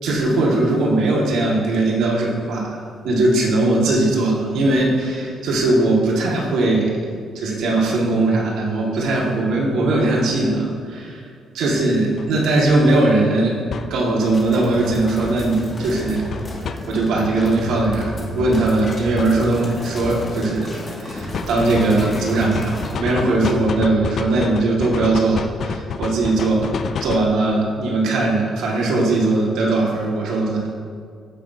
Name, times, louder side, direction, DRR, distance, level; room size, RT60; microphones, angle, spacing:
voice 1, 0.0-2.8 3.0-7.0 7.4-11.2 11.5-13.6 13.9-16.3 16.9-26.7 27.0-30.7, right 2 dB, 85° right, -3 dB, 1.8 m, -19 dB
sound 1, 12.2-12.3 13.7-13.9 16.3-16.8 18.9-19.3 21.3-27.3, left 6 dB, 60° left, 0.5 m, -28 dB
sound 2, 14.3-22.9, left 1 dB, 35° left, 2.0 m, -32 dB
14.0 x 5.8 x 2.7 m, 2.1 s
cardioid pair, 90°, 0 cm